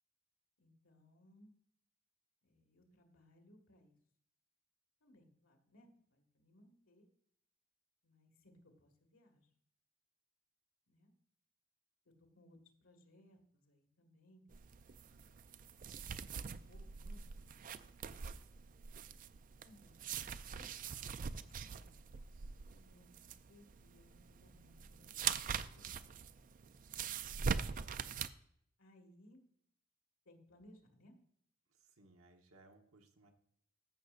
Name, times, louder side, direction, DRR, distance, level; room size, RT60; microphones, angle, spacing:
voice 1, 0.6-1.5 2.4-4.0 5.0-7.1 8.0-9.5 10.9-11.1 12.1-14.4 14.7-18.3 19.6-20.1 20.5-21.3 21.6-22.1 22.7-26.1 28.8-29.4 30.3-31.1, left 1 dB, 75° left, 3 dB, 1.9 m, -65 dB
sound 1, 14.5-28.3, right 6 dB, 40° right, 0.4 m, -43 dB
voice 2, 31.7-33.3, right 2 dB, 85° right, 4 dB, 1.2 m, -64 dB
14.5 x 6.4 x 2.5 m, 0.69 s
head